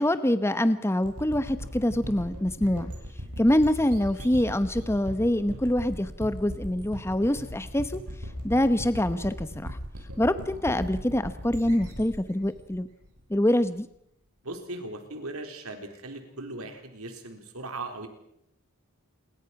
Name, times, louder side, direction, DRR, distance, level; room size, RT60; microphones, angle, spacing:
voice 1, 0.0-2.9 3.4-8.0 8.4-9.8 10.2-12.9 13.3-13.9, left 1 dB, 10° left, 12 dB, 0.9 m, -25 dB
sound 1, 1.0-13.6, equal, 90° right, 7.9 m, -39 dB
voice 2, 14.4-18.1, right 2 dB, 75° right, 6 dB, 4.1 m, -38 dB
28.5 x 22.5 x 5.9 m, 0.76 s
head